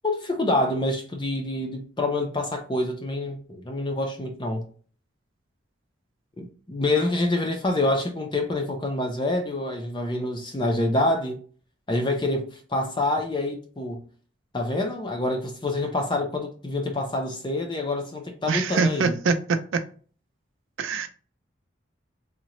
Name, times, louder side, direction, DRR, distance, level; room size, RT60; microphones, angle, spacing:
voice 1, 0.0-4.7 6.4-11.4 11.9-14.0 14.5-19.1, left 2 dB, 25° left, 0.4 m, -26 dB
voice 2, 18.5-19.8 20.8-21.1, right 4 dB, 90° right, 0.4 m, -24 dB
3.6 x 2.1 x 2.9 m
head